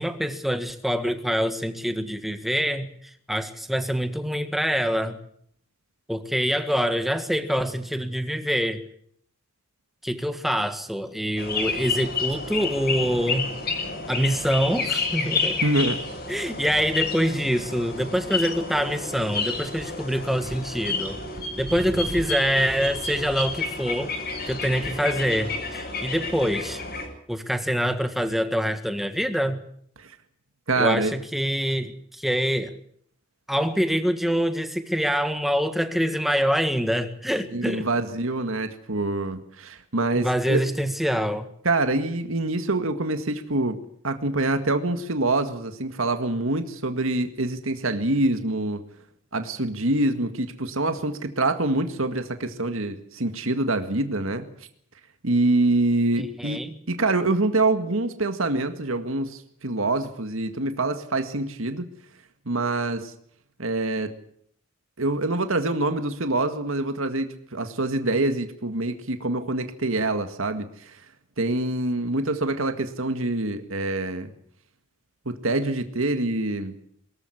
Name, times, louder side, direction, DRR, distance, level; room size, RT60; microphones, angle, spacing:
voice 1, 0.0-5.2 6.1-8.8 10.0-13.5 14.1-15.6 16.3-21.2 21.6-24.1 24.5-26.8 27.3-29.6 30.8-32.7 33.5-37.9 40.2-41.5 56.2-56.7, equal, ahead, 8 dB, 1.7 m, -25 dB
sound 1, 11.4-27.1, left 4 dB, 45° left, 6.8 m, -30 dB
voice 2, 15.6-16.0 30.0-30.1 30.7-31.1 37.5-40.6 41.7-43.8 44.0-48.8 49.3-54.5 55.2-56.6 56.9-61.9 62.5-63.1 63.6-64.1 65.0-71.0 71.4-74.3 75.3-76.7, right 2 dB, 70° right, 8 dB, 1.9 m, -25 dB
23.5 x 14.5 x 9.8 m, 0.66 s
head